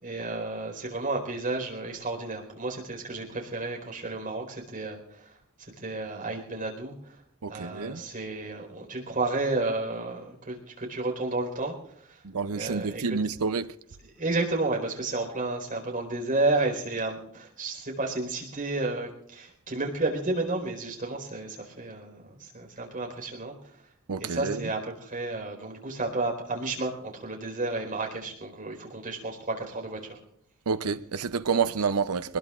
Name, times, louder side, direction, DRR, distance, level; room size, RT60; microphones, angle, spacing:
voice 1, 0.0-5.3 5.8-6.9 7.5-12.2 12.5-13.2 14.0-23.5 24.2-30.2, right 2 dB, 40° right, 4.4 m, -32 dB
voice 2, 7.4-8.0 12.2-13.7 24.1-24.7 30.7-32.4, right 5 dB, 80° right, 0.6 m, -29 dB
23.5 x 20.5 x 2.5 m
head